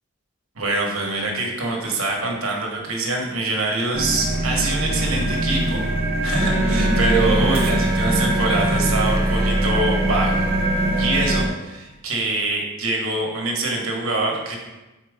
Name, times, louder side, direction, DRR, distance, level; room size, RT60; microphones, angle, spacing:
voice 1, 0.5-5.8 6.2-10.4 11.0-14.6, right 2 dB, 70° right, 0 dB, 1.3 m, -24 dB
sound 1, 3.9-11.5, right 1 dB, 45° right, 0.6 m, -23 dB
Wind instrument woodwind instrument, 6.3-11.5, equal, 10° right, 1.1 m, -25 dB
4.6 x 4.5 x 5.0 m, 1.1 s
head